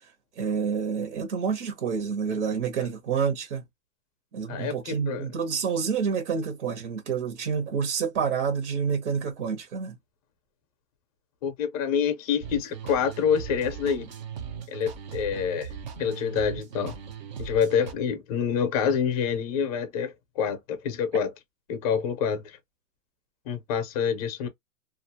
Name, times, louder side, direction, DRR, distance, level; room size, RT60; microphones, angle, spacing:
voice 1, 0.4-3.6 4.3-9.9, right 6 dB, 60° right, 1.0 m, -28 dB
voice 2, 4.5-5.3 11.4-14.1 14.7-15.7 16.0-17.0 17.4-21.3 21.7-22.5 23.5-24.5, left 7 dB, 30° left, 0.5 m, -27 dB
sound 1, 12.4-17.9, right 7 dB, 35° right, 0.4 m, -38 dB
2.4 x 2.0 x 2.7 m
supercardioid pair, 165°, 40 cm